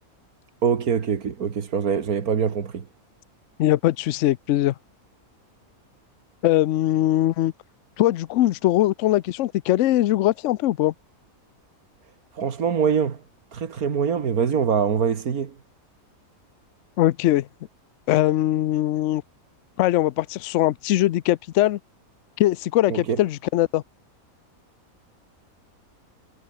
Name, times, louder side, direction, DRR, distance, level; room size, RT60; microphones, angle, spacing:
voice 1, 0.6-2.8 12.3-13.2 13.5-15.5 22.9-23.2, right 6 dB, 75° right, 2.1 m, -24 dB
voice 2, 3.6-4.7 6.4-7.5 8.0-10.9 17.0-17.5 18.1-19.2 19.8-21.8 22.4-23.8, left 14 dB, 65° left, 0.8 m, -21 dB
omnidirectional pair, 1.5 m